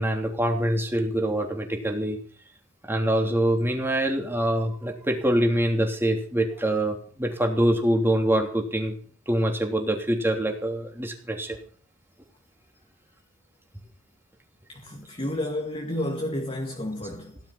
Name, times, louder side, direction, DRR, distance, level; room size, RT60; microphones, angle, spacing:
voice 1, 0.0-2.2 2.8-8.9 9.3-11.6, right 1 dB, 10° right, 3.1 m, -25 dB
voice 2, 14.7-17.4, left 1 dB, 30° left, 2.2 m, -31 dB
17.5 x 11.5 x 5.8 m
head